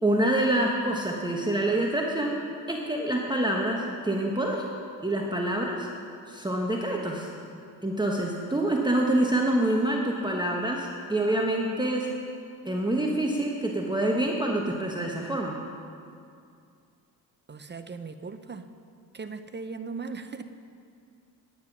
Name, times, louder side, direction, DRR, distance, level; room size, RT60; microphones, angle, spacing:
voice 1, 0.0-2.4 2.7-4.7 5.0-5.9 6.3-7.3 7.8-12.1 12.6-15.6, right 1 dB, 10° right, -1 dB, 1.2 m, -26 dB
voice 2, 17.5-18.6 19.1-20.4, right 4 dB, 25° right, 10 dB, 0.6 m, -38 dB
9.7 x 9.4 x 6.1 m, 2.4 s
cardioid pair, 70°, 41 cm